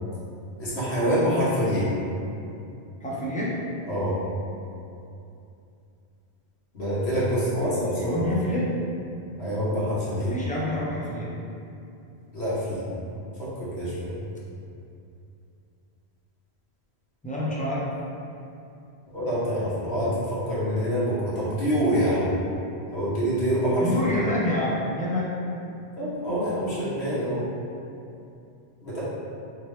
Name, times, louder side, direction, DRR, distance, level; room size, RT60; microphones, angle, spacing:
voice 1, 0.6-1.9 3.9-4.1 6.7-8.2 9.4-10.3 12.3-12.8 13.4-14.1 19.1-22.3 22.9-24.1 26.0-27.5 28.8-29.0, equal, 80° left, -9 dB, 1.4 m, -26 dB
voice 2, 3.0-3.6 7.3-8.7 10.3-11.3 17.2-17.8 23.8-25.3, left 1 dB, 10° left, -7 dB, 0.4 m, -27 dB
3.4 x 3.0 x 3.2 m, 2.7 s
omnidirectional pair, 1.1 m